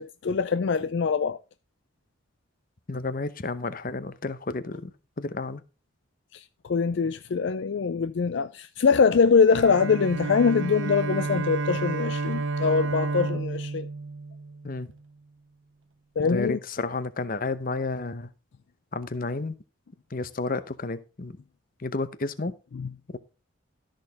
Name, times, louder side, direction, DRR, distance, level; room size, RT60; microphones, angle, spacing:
voice 1, 0.0-1.4 6.3-13.9 16.2-16.6 22.7-22.9, left 5 dB, 60° left, 0.4 m, -23 dB
voice 2, 2.9-4.9 5.2-5.6 14.6-14.9 16.2-18.3 18.9-19.5 20.1-21.4 21.8-22.5, left 3 dB, 45° left, 0.8 m, -31 dB
Bowed string instrument, 9.5-14.9, right 3 dB, 70° right, 0.7 m, -31 dB
13.0 x 6.5 x 4.0 m
head